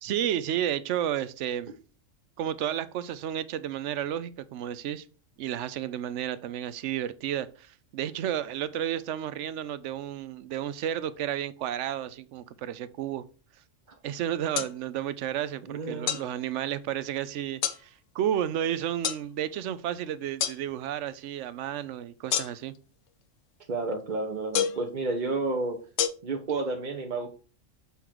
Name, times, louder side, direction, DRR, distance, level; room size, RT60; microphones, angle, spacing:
voice 1, 0.0-1.7 2.4-5.0 5.4-13.2 14.0-22.7, right 10 dB, 75° right, 0.9 m, -32 dB
sound 1, 14.5-14.7 16.1-16.3 17.6-17.8 19.0-19.2 20.4-20.6 22.3-22.8 24.5-24.9 26.0-26.1, left 9 dB, 80° left, 1.0 m, -27 dB
voice 2, 15.7-16.3 23.7-25.8 26.2-27.3, right 3 dB, 45° right, 0.8 m, -31 dB
6.8 x 3.7 x 4.6 m
omnidirectional pair, 1.3 m